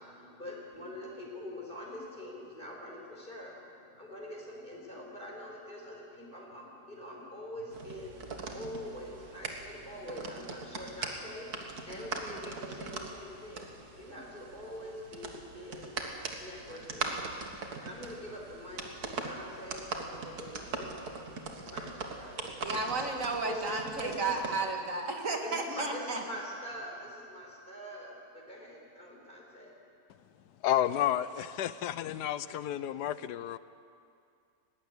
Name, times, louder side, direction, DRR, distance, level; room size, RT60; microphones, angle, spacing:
voice 1, 0.0-22.7 23.0-23.1 23.5-23.7 24.0-24.3 25.4-29.8, left 1 dB, 30° left, -1 dB, 4.6 m, -44 dB
sound 1, 7.7-24.6, right 3 dB, 65° right, 2.1 m, -41 dB
voice 2, 22.6-26.2, right 3 dB, 50° right, 3 dB, 2.3 m, -33 dB
voice 3, 30.6-33.6, left 11 dB, 80° left, 15 dB, 1.2 m, -31 dB
19.0 x 15.5 x 9.6 m, 2.4 s
omnidirectional pair, 1.8 m